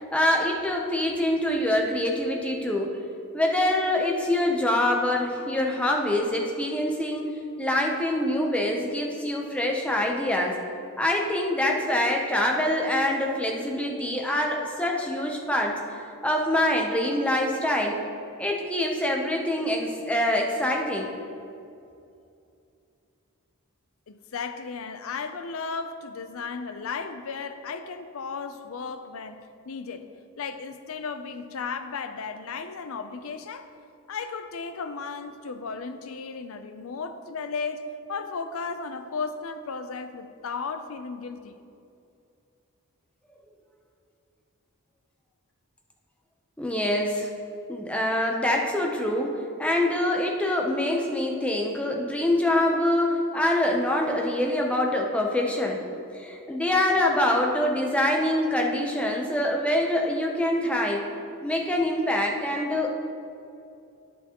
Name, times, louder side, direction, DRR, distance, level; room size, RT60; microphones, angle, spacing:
voice 1, 0.0-2.9 3.3-10.6 11.0-15.8 16.2-18.0 18.4-21.1 46.6-47.3 47.7-55.8 56.1-61.0 61.4-62.9, left 1 dB, 5° left, 0 dB, 0.7 m, -25 dB
voice 2, 24.1-30.1 30.4-33.7 34.1-41.6, left 5 dB, 65° left, 9 dB, 0.5 m, -35 dB
10.5 x 8.1 x 3.0 m, 2.6 s
head